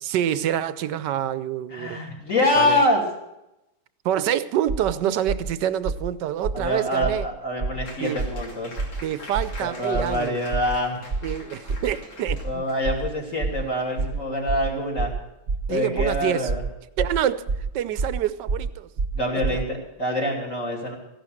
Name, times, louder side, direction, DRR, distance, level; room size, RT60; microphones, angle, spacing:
voice 1, 0.0-2.0 2.6-2.8 4.0-7.3 8.0-8.2 9.0-10.4 11.2-12.7 15.7-16.5 17.0-17.4 17.7-18.9 19.5-19.6, right 10 dB, 70° right, 14 dB, 1.2 m, -26 dB
voice 2, 1.7-3.0 6.5-8.8 9.6-11.0 12.4-15.1 15.7-16.6 19.1-20.9, left 1 dB, 40° left, -2 dB, 3.3 m, -25 dB
sound 1, 4.7-4.9 5.3-5.5 5.8-6.1 6.4-6.7 7.0-7.3 7.6-7.8 8.2-8.4 8.8-9.0 9.3-9.6 9.9-10.2 10.5-10.8 11.1-11.3 11.7-11.9 12.3-12.5 12.8-13.1 13.4-13.6 14.0-14.2 14.5-14.7 15.0-15.2 15.5-15.7 16.0-16.2 16.5-16.7 17.0-17.2 17.5-17.7 18.0-18.2 18.5-18.7 19.0-19.6, right 3 dB, 40° right, 1.3 m, -27 dB
Applause, 7.8-14.2, left 2 dB, 85° left, 3.6 m, -44 dB
15.0 x 11.5 x 6.3 m, 0.89 s
omnidirectional pair, 2.2 m